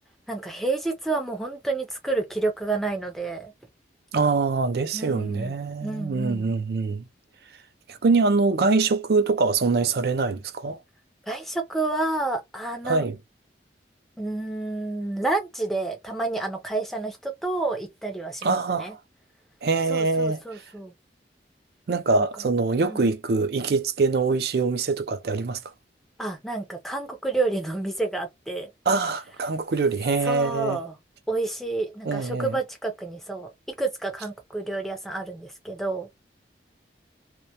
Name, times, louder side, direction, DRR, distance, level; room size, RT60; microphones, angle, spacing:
voice 1, 0.3-3.5 4.9-5.5 5.8-6.5 11.2-13.1 14.2-18.9 19.9-20.9 22.1-22.3 22.8-23.1 26.2-28.7 30.2-31.0 31.3-33.5 33.8-36.1, right 2 dB, ahead, 0.5 m, -29 dB
voice 2, 4.1-7.0 7.9-10.8 12.8-13.2 18.4-19.0 19.6-20.6 21.9-25.6 28.9-30.8 32.0-32.6, right 4 dB, 60° right, 0.4 m, -24 dB
2.2 x 2.2 x 2.7 m
head